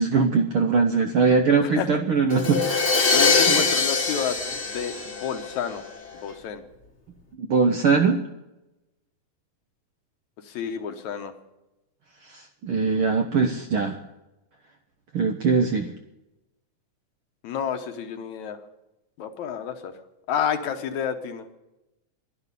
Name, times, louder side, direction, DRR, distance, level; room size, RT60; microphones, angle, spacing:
voice 1, 0.0-2.9 3.5-3.6 7.4-8.2 12.3-14.0 15.1-15.9, right 4 dB, 70° right, 5 dB, 1.3 m, -21 dB
Crash cymbal, 2.3-6.1, left 4 dB, 35° left, 1.3 m, -23 dB
voice 2, 3.1-4.4 4.7-5.8 6.1-6.6 10.4-11.3 17.4-18.6 19.2-19.9 20.3-21.5, left 8 dB, 75° left, 7 dB, 2.4 m, -30 dB
11.5 x 11.0 x 9.8 m, 0.97 s
omnidirectional pair, 3.4 m